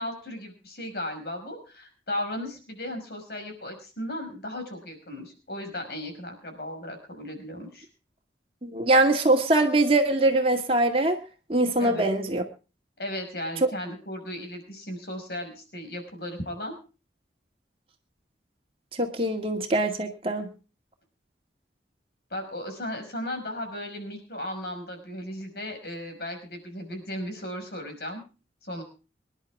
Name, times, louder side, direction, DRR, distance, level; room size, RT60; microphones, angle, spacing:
voice 1, 0.0-7.9 11.8-12.1 13.0-16.8 22.3-28.2 28.6-28.8, left 1 dB, 60° left, 5 dB, 5.5 m, -36 dB
voice 2, 8.6-11.2 11.5-12.4 19.0-20.5, right 2 dB, 30° right, 3 dB, 2.1 m, -22 dB
25.5 x 11.0 x 3.5 m, 0.34 s
head